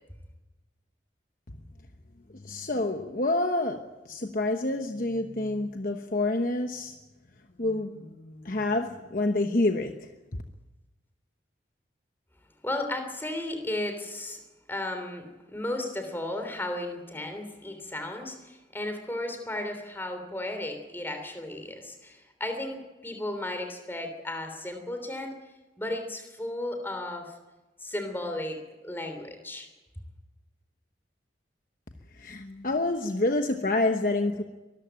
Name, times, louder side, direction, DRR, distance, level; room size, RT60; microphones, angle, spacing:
voice 1, 2.3-6.9 7.6-10.1 32.1-34.4, left 2 dB, 45° left, 5 dB, 1.1 m, -28 dB
voice 2, 12.6-14.4 14.7-25.4 25.8-27.3 27.8-29.7, left 1 dB, 10° left, 6 dB, 3.2 m, -34 dB
23.5 x 14.0 x 8.9 m, 1.1 s
head